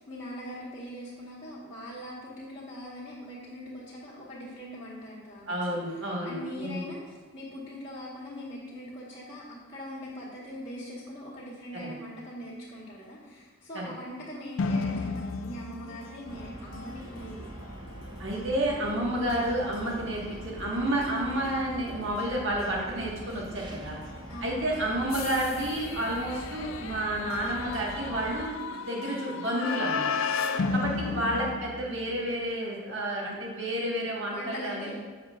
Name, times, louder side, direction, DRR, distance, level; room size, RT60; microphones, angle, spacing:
voice 1, 0.0-17.5 24.3-24.7 30.4-31.2 34.3-35.0, equal, 40° left, -10 dB, 1.4 m, -42 dB
voice 2, 5.5-6.9 11.7-11.9 13.7-13.9 18.2-24.0 24.4-30.1 30.7-35.0, right 1 dB, 60° right, -3 dB, 1.4 m, -30 dB
sound 1, 14.6-32.3, left 4 dB, 65° left, 0.4 m, -36 dB
sound 2, 16.3-28.4, right 1 dB, 20° right, 0.4 m, -43 dB
7.2 x 6.5 x 2.4 m, 1.4 s
head